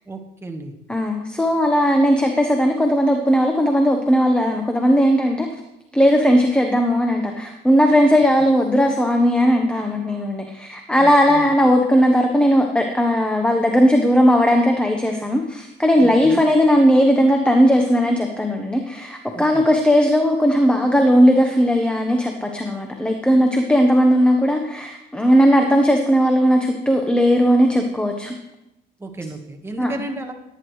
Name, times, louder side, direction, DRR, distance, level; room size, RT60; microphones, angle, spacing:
voice 1, 0.1-0.7 11.0-11.5 16.0-16.4 19.3-19.6 29.0-30.3, right 2 dB, 15° right, 3 dB, 1.4 m, -33 dB
voice 2, 0.9-5.5 5.9-28.4 29.8-29.9, equal, 5° left, 3 dB, 1.0 m, -17 dB
17.0 x 9.8 x 3.2 m, 0.91 s
cardioid pair, 110°, 17 cm